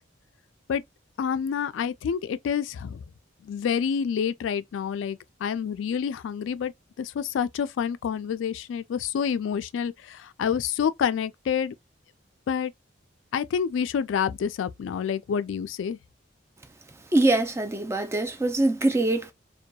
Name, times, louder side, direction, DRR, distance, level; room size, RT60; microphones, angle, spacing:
voice 1, 1.2-3.0 3.5-6.7 7.0-11.7 12.5-12.7 13.3-16.0, left 7 dB, 80° left, 0.3 m, -28 dB
voice 2, 17.1-19.3, right 2 dB, 15° right, 0.3 m, -23 dB
2.7 x 2.2 x 2.2 m
head